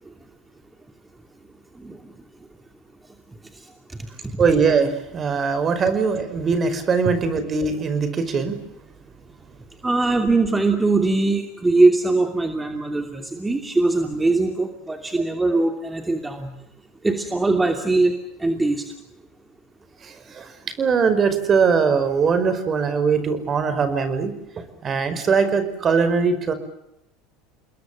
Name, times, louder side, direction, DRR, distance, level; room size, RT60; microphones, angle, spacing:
voice 1, 1.7-2.1 3.5-4.0 4.2-4.4 9.8-16.5 17.0-18.9, right 3 dB, 15° right, 5 dB, 2.8 m, -21 dB
voice 2, 4.4-8.6 20.0-26.5, right 5 dB, 35° right, 11 dB, 5.1 m, -21 dB
29.5 x 21.0 x 7.6 m, 0.80 s
hypercardioid pair, 85°, 0 cm